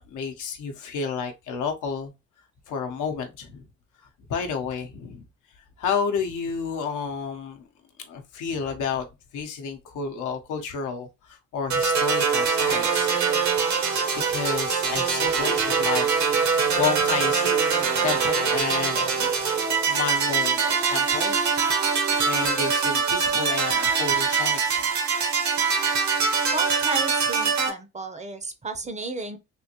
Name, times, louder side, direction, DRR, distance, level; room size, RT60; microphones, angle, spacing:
voice 1, 0.1-2.1 2.7-3.7 4.0-5.2 5.8-7.7 8.1-9.1 9.3-13.1 14.1-16.1 16.5-19.3 19.9-21.4 22.2-24.9, left 6 dB, 80° left, 0.8 m, -31 dB
sound 1, 11.7-27.7, right 5 dB, 65° right, 1.0 m, -23 dB
voice 2, 26.5-29.4, right 3 dB, 25° right, 0.6 m, -33 dB
3.6 x 2.5 x 2.8 m
cardioid pair, 90°, 30 cm